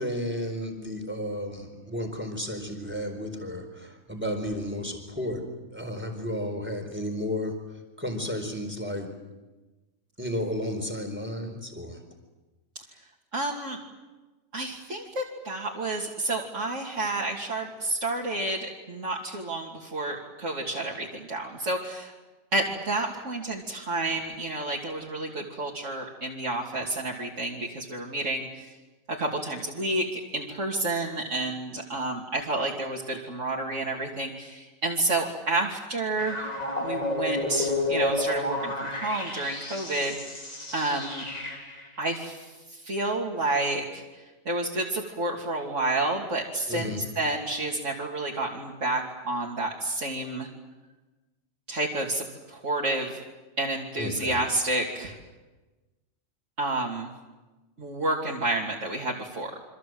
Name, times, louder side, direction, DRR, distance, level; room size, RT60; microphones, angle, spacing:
voice 1, 0.0-5.4 5.7-7.5 8.0-9.1 10.2-12.0 46.7-47.0 54.0-54.4, left 1 dB, 10° right, 5 dB, 4.3 m, -32 dB
voice 2, 13.3-13.8 14.5-22.1 22.5-28.7 29.1-36.5 36.8-40.4 40.7-41.2 42.0-50.5 51.7-53.2 53.6-55.2 56.6-57.1 57.8-59.6, right 2 dB, 65° right, -3 dB, 3.2 m, -30 dB
sound 1, 36.2-41.9, left 2 dB, 30° left, 3.9 m, -31 dB
28.0 x 25.5 x 7.9 m, 1.2 s
omnidirectional pair, 1.4 m